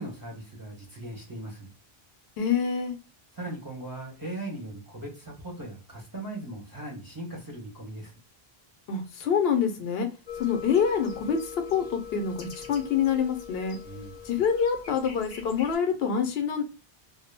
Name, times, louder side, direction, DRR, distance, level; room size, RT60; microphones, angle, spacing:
voice 1, 0.0-1.7 3.4-8.1 13.8-14.3, right 1 dB, 25° right, 0.7 m, -39 dB
voice 2, 2.4-3.0 8.9-10.1 10.4-11.4 11.7-13.8 14.2-16.6, left 7 dB, 80° left, 0.8 m, -26 dB
sound 1, 10.3-15.8, left 7 dB, 50° left, 0.7 m, -42 dB
2.2 x 2.0 x 3.1 m
omnidirectional pair, 1.0 m